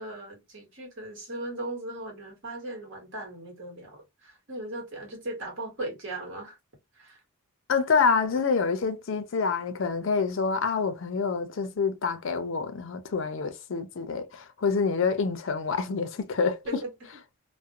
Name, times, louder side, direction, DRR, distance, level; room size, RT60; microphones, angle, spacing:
voice 1, 0.0-6.6 6.9-7.2 16.6-16.9, right 1 dB, 55° right, 1.2 m, -38 dB
voice 2, 7.7-16.6, left 5 dB, 60° left, 0.4 m, -27 dB
2.4 x 2.0 x 2.7 m
head